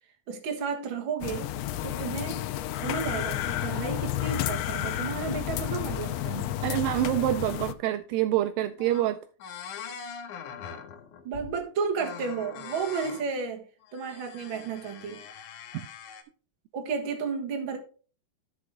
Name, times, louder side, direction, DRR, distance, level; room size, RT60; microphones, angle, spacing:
voice 1, 0.3-1.5 1.8-2.4 2.8-6.5 11.2-13.6 13.9-15.2 16.7-17.8, right 5 dB, 50° right, 1.6 m, -32 dB
sound 1, 1.2-7.7, left 13 dB, 85° left, 2.7 m, -31 dB
voice 2, 6.6-9.2, right 14 dB, 90° right, 1.9 m, -26 dB
sound 2, 8.5-8.6 8.8-9.1 9.4-11.6 12.0-13.3 13.8-16.2, left 7 dB, 70° left, 2.2 m, -43 dB
13.0 x 5.2 x 3.5 m
omnidirectional pair, 4.5 m